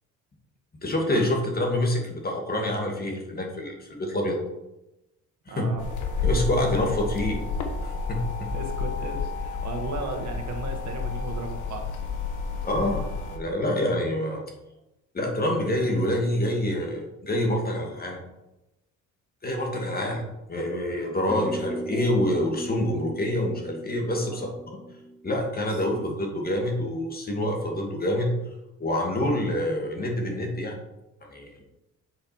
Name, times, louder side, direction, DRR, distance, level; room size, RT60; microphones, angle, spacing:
voice 1, 0.8-4.4 5.5-5.7 6.2-7.4 7.8-8.5 12.6-13.1 13.3-14.4 15.1-18.2 19.4-20.2 20.5-24.5 25.2-28.4 28.8-30.8 31.3-31.5, left 1 dB, 30° left, 1 dB, 2.2 m, -26 dB
voice 2, 5.5-5.9 8.5-11.9 19.8-20.2 24.2-24.5 25.9-26.2, right 3 dB, 65° right, 4 dB, 1.4 m, -36 dB
sound 1, 5.8-13.4, left 4 dB, 80° left, 1.3 m, -30 dB
sound 2, 21.3-26.0, right 1 dB, 5° left, 0.7 m, -37 dB
7.9 x 5.1 x 4.5 m, 0.92 s
cardioid pair, 90°, 30 cm